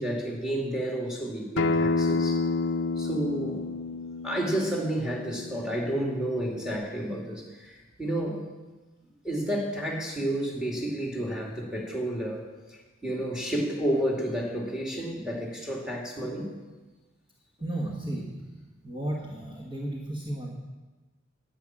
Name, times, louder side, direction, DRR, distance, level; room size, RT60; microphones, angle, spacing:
voice 1, 0.0-2.4 3.0-3.6 4.2-8.5 9.2-16.5, right 1 dB, 5° right, -2 dB, 2.4 m, -31 dB
Acoustic guitar, 1.6-6.8, left 3 dB, 60° left, 0.6 m, -29 dB
voice 2, 17.6-20.6, right 1 dB, 25° right, -3 dB, 1.3 m, -34 dB
10.5 x 9.2 x 7.4 m, 1.2 s
head